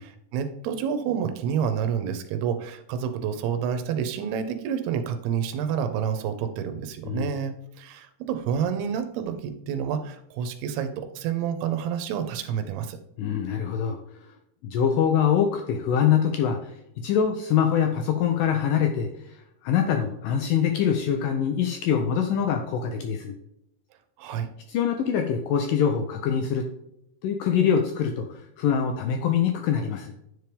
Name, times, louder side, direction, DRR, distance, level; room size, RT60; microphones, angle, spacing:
voice 1, 0.0-13.0 24.2-24.5, right 8 dB, 85° right, 9 dB, 2.8 m, -29 dB
voice 2, 13.2-14.3 14.6-23.4 24.7-26.7 27.2-30.2, left 8 dB, 90° left, 5 dB, 1.9 m, -24 dB
10.0 x 4.6 x 3.4 m, 0.81 s
omnidirectional pair, 4.6 m